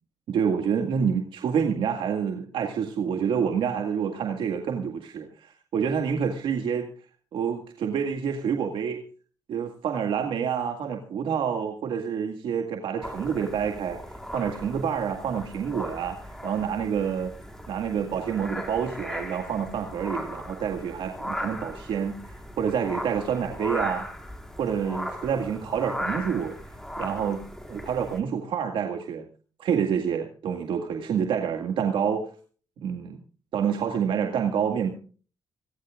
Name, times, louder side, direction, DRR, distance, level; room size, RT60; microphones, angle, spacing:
voice 1, 0.3-6.9 7.3-9.0 9.5-14.0 14.3-17.3 17.7-22.2 22.6-24.1 24.6-26.6 27.0-27.4 27.7-29.3 29.6-32.3 32.8-33.2 33.5-34.9, right 7 dB, 75° right, 4 dB, 2.0 m, -27 dB
sound 1, 13.0-28.2, equal, 5° left, 4.5 m, -37 dB
26.5 x 14.5 x 2.5 m, 0.40 s
cardioid pair, 75°, 9 cm